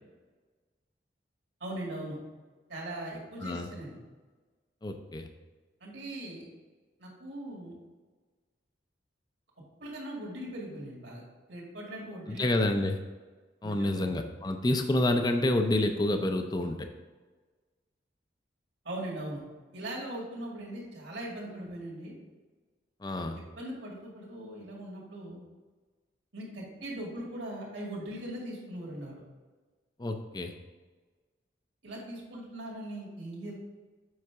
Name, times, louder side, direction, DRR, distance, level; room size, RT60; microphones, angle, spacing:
voice 1, 1.6-2.2 2.7-4.0 5.8-6.4 7.0-7.7 9.8-11.2 11.5-12.7 13.6-14.1 18.8-19.4 19.7-22.1 23.4-25.4 26.3-29.2 31.8-33.5, right 1 dB, 75° right, -4 dB, 2.2 m, -40 dB
voice 2, 4.8-5.3 12.3-13.0 13.6-16.9 23.0-23.4 30.0-30.5, left 1 dB, 20° left, 6 dB, 0.5 m, -28 dB
7.8 x 5.6 x 3.5 m, 1.3 s
head